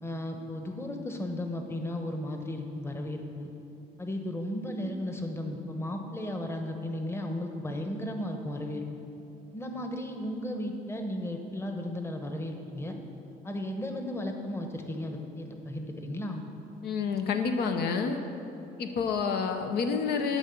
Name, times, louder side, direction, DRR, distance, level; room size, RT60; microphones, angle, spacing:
voice 1, 0.0-3.5 4.0-8.8 9.5-12.9 13.4-16.4, left 1 dB, 15° left, 4 dB, 1.0 m, -35 dB
voice 2, 16.8-18.2 18.8-20.4, left 5 dB, 70° left, 5 dB, 0.8 m, -28 dB
11.5 x 4.7 x 7.0 m, 2.9 s
cardioid pair, 110°, 17 cm